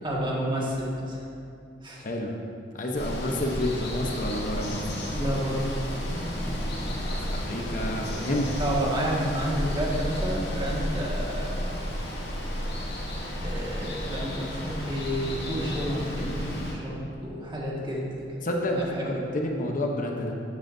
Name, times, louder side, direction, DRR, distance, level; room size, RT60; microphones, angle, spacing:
voice 1, 0.0-1.2 1.8-2.1 5.1-6.2 8.6-11.6 13.4-18.4 18.7-19.1, equal, 25° right, -4 dB, 1.8 m, -30 dB
voice 2, 2.0-2.3 2.7-4.8 7.0-8.5 18.4-20.4, left 1 dB, 45° left, 1 dB, 1.0 m, -29 dB
Water, 2.9-16.7, equal, 60° left, 2.4 m, -32 dB
13.5 x 9.7 x 2.7 m, 2.5 s
head